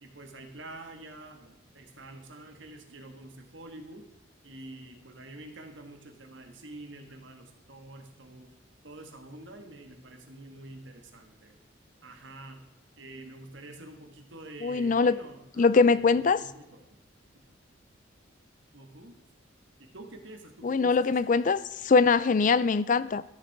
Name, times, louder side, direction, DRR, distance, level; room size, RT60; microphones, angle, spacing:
voice 1, 0.0-4.1 4.4-8.5 8.8-11.5 12.0-12.7 13.0-17.0 17.3-17.5 18.7-19.2 19.8-21.5, right 2 dB, 65° right, 1.6 m, -47 dB
voice 2, 14.6-15.2 15.6-16.4 20.6-23.2, left 4 dB, 40° left, 0.4 m, -22 dB
13.5 x 6.6 x 4.7 m
head